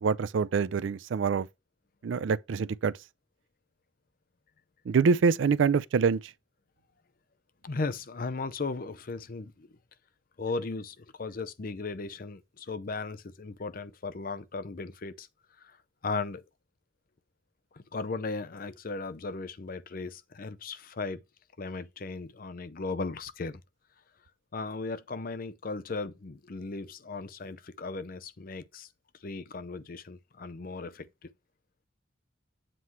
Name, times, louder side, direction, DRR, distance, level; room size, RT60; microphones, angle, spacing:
voice 1, 0.0-1.5 2.0-2.9 4.9-6.2, right 5 dB, 75° right, 0.4 m, -25 dB
voice 2, 7.6-9.7 10.4-15.3 15.6-15.8 16.0-16.4 17.7-21.2 21.6-23.6 24.5-28.9 29.2-31.3, left 3 dB, 50° left, 0.6 m, -36 dB
7.6 x 3.1 x 5.6 m
head